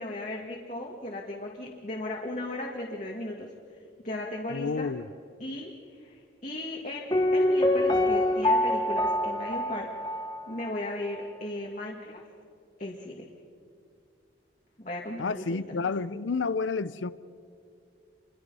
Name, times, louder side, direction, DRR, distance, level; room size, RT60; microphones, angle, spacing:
voice 1, 0.0-3.5 4.0-4.9 5.4-9.9 10.5-12.2 12.8-13.3 14.8-15.8, left 1 dB, 40° left, -1 dB, 1.9 m, -36 dB
voice 2, 4.5-5.1 15.2-17.1, left 4 dB, 90° left, 16 dB, 0.6 m, -30 dB
Piano, 7.1-10.9 11.1-11.2, left 1 dB, 20° left, 1.3 m, -25 dB
28.5 x 22.0 x 5.5 m, 2.3 s
head